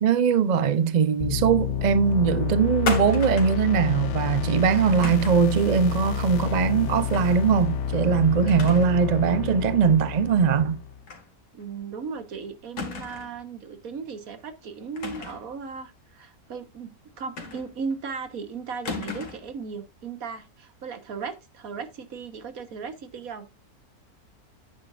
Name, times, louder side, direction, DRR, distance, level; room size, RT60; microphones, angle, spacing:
voice 1, 0.0-10.8, right 6 dB, 45° right, 0.5 m, -21 dB
sound 1, 1.2-11.0, left 7 dB, 60° left, 0.9 m, -29 dB
sound 2, 2.9-3.7 5.0-5.5 7.1-7.4 7.8-7.9 8.5-9.0 9.3-9.4 11.1-11.3 11.6-11.7 12.8-13.4 15.0-15.5 17.4-17.9 18.8-19.5, left 4 dB, 85° left, 2.4 m, -34 dB
voice 2, 11.5-16.9 17.2-23.5, right 5 dB, 65° right, 1.7 m, -36 dB
10.0 x 9.0 x 2.5 m
omnidirectional pair, 1.6 m